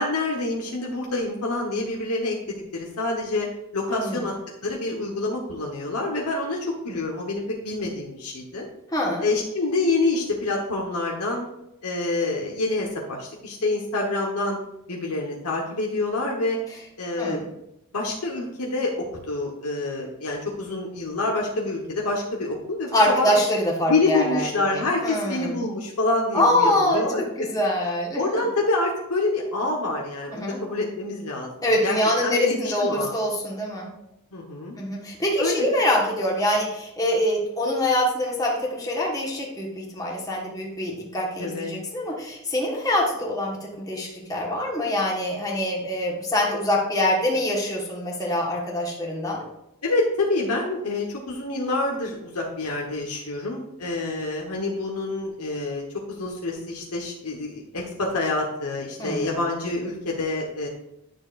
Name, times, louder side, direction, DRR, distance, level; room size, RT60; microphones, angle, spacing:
voice 1, 0.0-3.5 3.7-4.3 4.6-8.7 9.2-11.5 11.8-14.6 14.9-16.6 17.0-17.4 17.9-23.3 23.9-27.5 28.2-33.1 34.3-34.8 35.4-35.6 41.4-41.7 49.8-60.7, left 2 dB, 90° left, -1 dB, 1.2 m, -27 dB
voice 2, 3.9-4.2 8.9-9.2 17.2-17.5 22.9-24.4 24.7-25.6 26.3-27.0 27.4-28.2 30.3-30.6 31.6-33.9 34.8-49.4 59.0-59.4, left 1 dB, 15° left, -3 dB, 1.4 m, -24 dB
9.8 x 6.4 x 2.5 m, 0.86 s
head